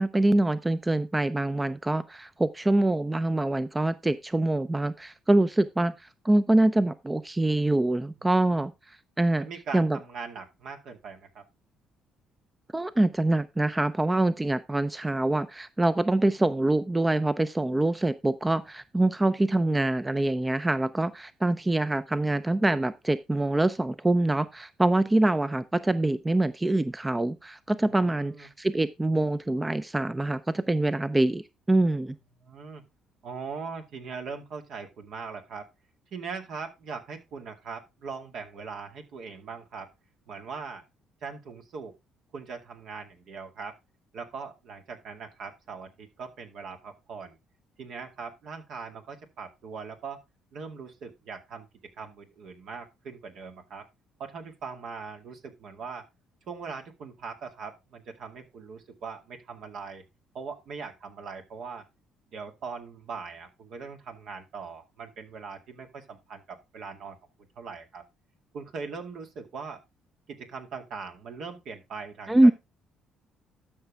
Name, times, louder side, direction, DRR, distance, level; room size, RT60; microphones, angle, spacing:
voice 1, 0.0-5.9 6.2-8.7 9.2-9.5 9.7-10.0 12.7-32.1 72.3-72.5, right 2 dB, 15° right, 13 dB, 0.6 m, -25 dB
voice 2, 8.3-8.6 9.4-11.4 28.0-28.5 32.4-32.8 33.2-35.7 36.1-39.9 40.3-40.8 41.2-41.9 42.3-43.8 44.1-47.3 47.8-50.2 50.5-53.9 54.2-56.1 56.5-60.0 60.3-61.8 62.3-67.2 67.6-68.0 68.5-69.8 70.3-72.5, right 5 dB, 65° right, 4 dB, 2.1 m, -40 dB
12.5 x 5.9 x 3.5 m, 0.23 s
supercardioid pair, 70°, 0 cm